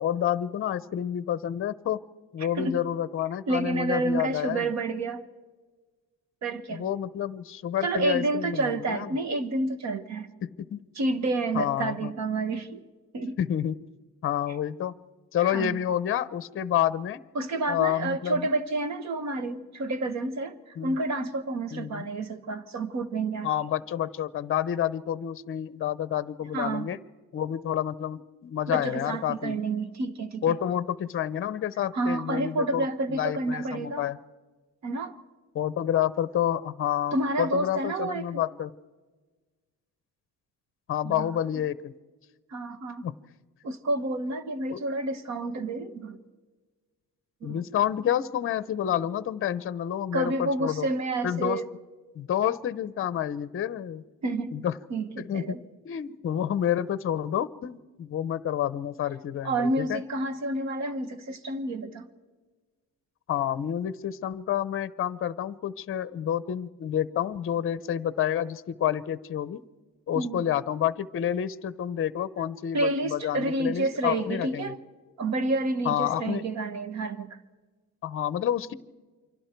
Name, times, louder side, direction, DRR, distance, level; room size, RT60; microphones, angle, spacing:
voice 1, 0.0-2.0 2.3-4.7 6.7-9.1 10.4-10.8 11.5-12.1 13.4-13.8 14.2-14.9 15.3-17.2 17.7-18.5 20.8-21.0 21.7-22.1 23.4-27.0 27.3-29.6 30.4-34.2 35.5-38.7 40.9-41.9 43.0-43.1 44.7-44.8 47.4-50.9 51.2-51.6 52.1-54.0 54.5-54.7 55.2-55.6 55.8-60.0 63.3-69.6 70.1-74.7 75.8-76.4 78.0-78.7, left 10 dB, 40° left, 0.7 m, -29 dB
voice 2, 2.5-2.8 3.5-5.2 6.4-6.9 7.8-10.3 10.9-12.8 13.1-13.4 15.5-15.8 17.3-23.5 26.5-26.9 28.7-30.5 31.9-34.1 34.8-35.2 37.1-38.4 41.0-41.3 42.5-43.1 43.6-46.2 47.4-47.6 50.1-51.7 54.2-54.6 54.9-55.6 59.4-62.1 70.1-70.4 72.7-74.8 75.2-77.4, right 2 dB, 50° right, 1.4 m, -29 dB
29.0 x 24.5 x 4.5 m
cardioid pair, 180°, 34 cm